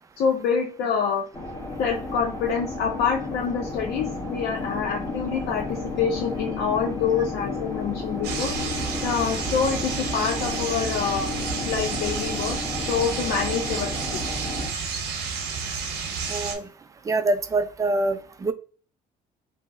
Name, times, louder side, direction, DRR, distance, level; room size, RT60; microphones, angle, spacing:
voice 1, 0.2-1.3 1.8-8.5 9.0-11.3 11.7-14.2, left 6 dB, 75° left, 0 dB, 0.6 m, -26 dB
sound 1, 1.3-14.7, left 3 dB, 15° left, 1.0 m, -32 dB
sound 2, 8.2-16.5, right 5 dB, 80° right, 0.7 m, -31 dB
voice 2, 16.3-16.7 17.1-18.5, right 2 dB, 20° right, 10 dB, 0.3 m, -25 dB
2.8 x 2.0 x 3.5 m, 0.40 s
cardioid pair, 110°, 17 cm